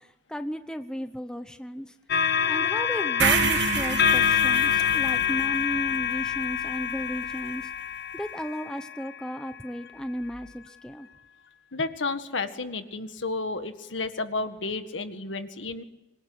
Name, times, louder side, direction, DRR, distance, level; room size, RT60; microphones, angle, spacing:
voice 1, 0.0-1.9 2.5-7.7 8.1-11.1, equal, 5° left, 8 dB, 1.0 m, -34 dB
sound 1, 2.1-9.6 10.3-10.5, left 8 dB, 55° left, 1.2 m, -26 dB
sound 2, 3.2-7.3, right 5 dB, 70° right, 1.5 m, -29 dB
voice 2, 11.7-15.8, left 3 dB, 85° left, 9 dB, 1.8 m, -31 dB
26.0 x 20.5 x 9.9 m, 1.0 s
head